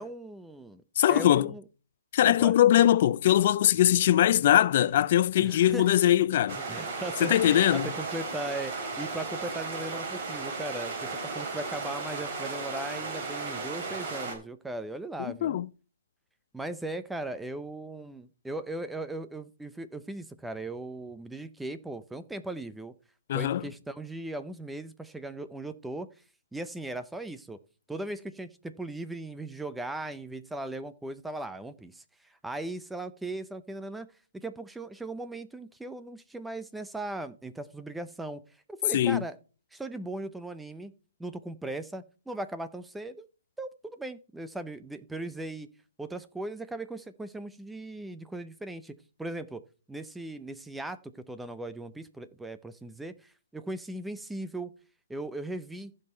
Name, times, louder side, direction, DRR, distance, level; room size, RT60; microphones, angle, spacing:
voice 1, 0.0-0.8 1.1-1.6 2.3-2.5 5.4-5.9 6.5-15.6 16.5-22.9 23.3-26.1 26.5-27.6 27.9-34.1 34.3-38.4 38.7-39.4 39.7-40.9 41.2-43.3 43.6-45.7 46.0-49.6 49.9-54.7 55.1-55.9, right 2 dB, 5° right, 0.6 m, -38 dB
voice 2, 1.0-1.5 2.1-6.6 7.2-7.9 15.4-15.7 23.3-23.6 38.9-39.2, left 12 dB, 45° left, 0.4 m, -21 dB
sound 1, 6.5-14.3, right 3 dB, 35° right, 4.1 m, -35 dB
15.0 x 5.6 x 4.4 m
hypercardioid pair, 155°, 0 cm